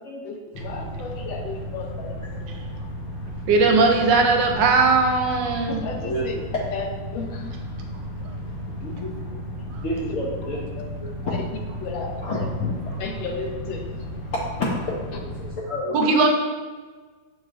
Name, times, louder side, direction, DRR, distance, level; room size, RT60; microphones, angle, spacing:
voice 1, 0.2-2.6 5.7-6.4 6.7-6.9 7.1-7.7 11.4-11.5 11.8-12.5 13.0-14.3, left 4 dB, 85° left, 2 dB, 1.4 m, -34 dB
sound 1, 0.5-15.5, equal, 55° left, 1.3 m, -34 dB
voice 2, 3.5-5.8 15.9-16.3, right 4 dB, 80° right, 3 dB, 1.3 m, -18 dB
voice 3, 8.8-9.2 9.8-11.4 12.2-12.7 14.3-15.2 15.7-16.0, left 2 dB, 70° left, -4 dB, 0.7 m, -29 dB
6.5 x 3.1 x 2.6 m, 1.4 s
omnidirectional pair, 2.0 m